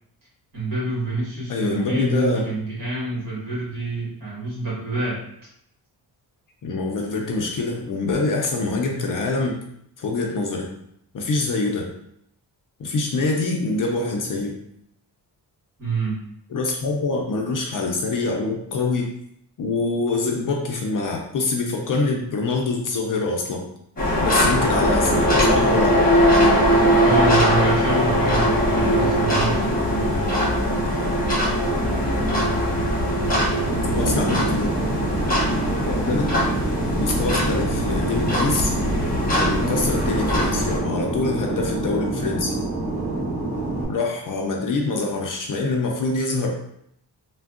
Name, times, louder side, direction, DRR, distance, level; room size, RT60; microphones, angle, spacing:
voice 1, 0.5-5.2 15.8-16.2 27.0-30.4, right 2 dB, 50° right, -6 dB, 1.5 m, -27 dB
voice 2, 1.5-2.5 6.6-9.6 10.0-10.7 11.1-11.9 12.8-14.6 16.5-19.1 19.6-23.7 24.2-26.1 33.9-34.8 35.9-36.3 37.0-38.7 39.3-42.6 43.9-46.5, left 3 dB, 50° left, 1 dB, 0.5 m, -25 dB
sound 1, 24.0-40.8, equal, 20° left, 1.0 m, -21 dB
Fixed-wing aircraft airplane, 33.7-43.8, right 2 dB, 30° right, 0.9 m, -27 dB
3.4 x 2.2 x 2.4 m, 0.73 s
cardioid pair, 110°, 43 cm